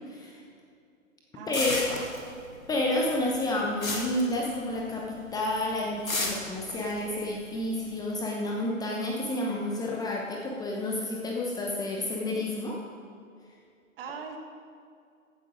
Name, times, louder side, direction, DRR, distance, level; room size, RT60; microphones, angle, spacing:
voice 1, 0.1-0.4 1.5-1.9 2.7-12.8, left 1 dB, 10° left, -2 dB, 0.9 m, -30 dB
voice 2, 1.3-2.5 14.0-14.4, right 5 dB, 45° right, 3 dB, 1.8 m, -41 dB
sound 1, 1.5-2.7 2.9-5.0 5.3-5.6 6.1-8.0, left 3 dB, 85° left, 2.1 m, -33 dB
14.5 x 8.7 x 5.1 m, 2.3 s
figure-of-eight pair, 125°, 40 cm